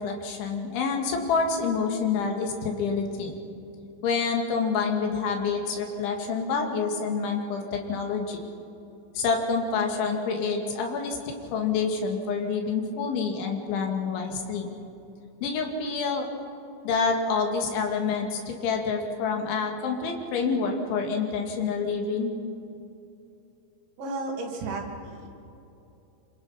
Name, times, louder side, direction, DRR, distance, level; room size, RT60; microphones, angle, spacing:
voice 1, 0.0-3.3 4.0-8.4 9.2-14.7 15.4-16.3 16.8-22.3, left 5 dB, 80° left, 3 dB, 4.5 m, -27 dB
voice 2, 24.0-25.3, right 2 dB, 80° right, -2 dB, 5.1 m, -33 dB
26.0 x 26.0 x 5.7 m, 2.8 s
omnidirectional pair, 5.3 m